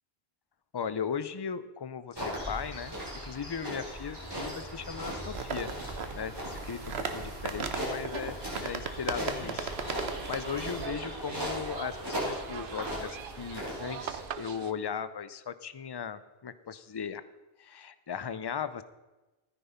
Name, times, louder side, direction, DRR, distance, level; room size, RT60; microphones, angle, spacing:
voice 1, 0.7-2.9 3.2-5.7 6.1-8.4 8.6-17.2 17.6-18.8, left 7 dB, 30° left, 14 dB, 0.5 m, -37 dB
sound 1, 2.1-14.3, equal, 25° right, 4.4 m, -38 dB
sound 2, 5.3-10.9, right 5 dB, 85° right, 1.4 m, -37 dB
sound 3, 9.6-14.7, right 8 dB, 60° right, 0.8 m, -42 dB
14.0 x 9.6 x 5.6 m, 1.1 s
omnidirectional pair, 1.0 m